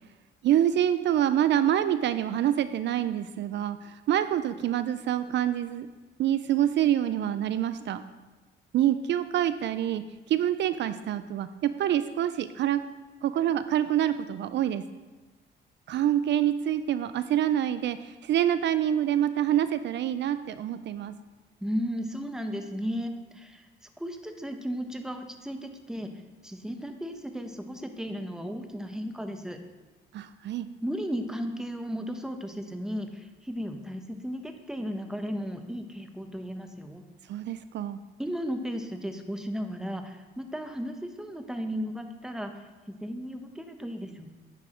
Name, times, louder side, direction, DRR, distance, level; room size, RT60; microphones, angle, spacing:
voice 1, 0.4-5.9 6.2-8.0 8.7-10.0 10.3-12.8 13.2-14.8 15.9-21.1 30.1-30.7 37.3-38.0, right 11 dB, 65° right, 12 dB, 0.4 m, -26 dB
voice 2, 21.6-23.7 24.0-26.1 26.4-29.6 30.8-37.0 38.2-44.3, equal, 5° right, 6 dB, 0.9 m, -35 dB
9.5 x 4.8 x 5.0 m, 1.2 s
cardioid pair, 90°, 20 cm